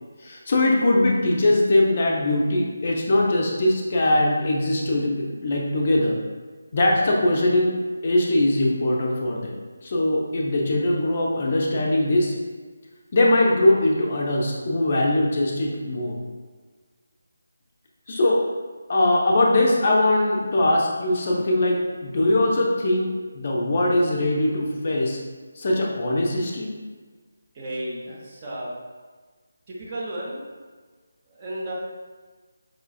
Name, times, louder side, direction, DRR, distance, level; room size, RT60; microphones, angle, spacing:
voice 1, 0.2-6.2 6.7-7.7 8.0-12.3 13.1-16.2 18.1-18.4 18.9-25.2 25.5-26.7, left 1 dB, 40° left, -1 dB, 0.4 m, -21 dB
voice 2, 27.5-28.7 29.7-30.4 31.3-31.7, right 1 dB, 25° right, -5 dB, 0.6 m, -33 dB
4.8 x 2.4 x 2.3 m, 1.4 s
figure-of-eight pair, 155°, 0 cm